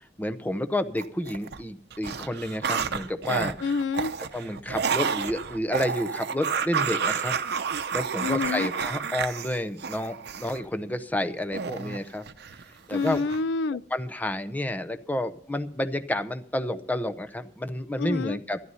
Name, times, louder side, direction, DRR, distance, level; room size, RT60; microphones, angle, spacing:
voice 1, 0.2-3.5 4.3-7.3 7.9-12.2 12.9-13.2 13.9-18.6, left 1 dB, 10° left, 0.7 m, -30 dB
sound 1, 1.0-1.6 1.9-10.6 11.5-12.6 13.0-13.4, right 6 dB, 60° right, 0.7 m, -30 dB
voice 2, 3.6-4.1 8.2-8.7 12.9-13.8 18.0-18.4, left 4 dB, 75° left, 0.4 m, -27 dB
13.0 x 11.0 x 5.6 m
head